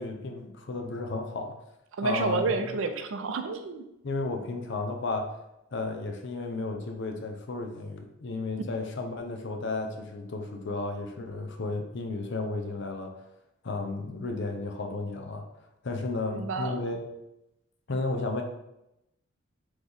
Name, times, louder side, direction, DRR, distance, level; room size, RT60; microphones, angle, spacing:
voice 1, 0.0-1.6 2.0-2.7 4.0-5.3 5.7-13.1 13.6-15.4 15.8-17.1 17.9-18.4, left 3 dB, 55° left, 4 dB, 0.6 m, -33 dB
voice 2, 2.0-3.8 16.3-16.7, right 4 dB, 65° right, 7 dB, 0.4 m, -29 dB
4.2 x 3.1 x 3.4 m, 0.87 s
head